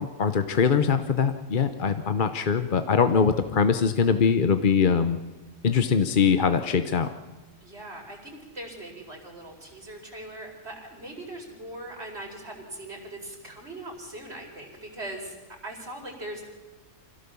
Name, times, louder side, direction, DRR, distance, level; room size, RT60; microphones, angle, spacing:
voice 1, 0.2-5.2 5.6-7.1, left 6 dB, 45° left, 9 dB, 0.9 m, -22 dB
voice 2, 7.6-15.3 15.6-16.4, right 1 dB, 50° right, 1 dB, 4.8 m, -40 dB
25.5 x 17.0 x 7.0 m, 1.2 s
omnidirectional pair, 1.4 m